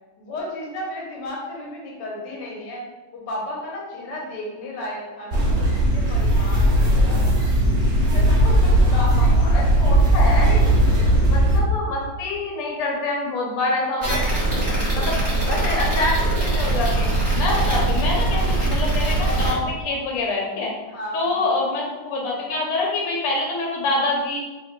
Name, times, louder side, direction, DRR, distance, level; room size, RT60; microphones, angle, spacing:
voice 1, 0.2-7.3 8.1-9.5 19.3-19.7 20.8-21.5, left 1 dB, 60° left, -3 dB, 1.5 m, -34 dB
sound 1, 5.3-11.6, right 1 dB, 85° right, 0.6 m, -17 dB
voice 2, 8.9-10.6 11.3-15.2 15.5-17.1 17.4-20.7 21.1-24.4, left 2 dB, 85° left, -2 dB, 1.7 m, -26 dB
sound 2, 14.0-19.5, right 2 dB, 25° right, 1.2 m, -22 dB
4.9 x 3.4 x 2.2 m, 1.2 s
omnidirectional pair, 2.3 m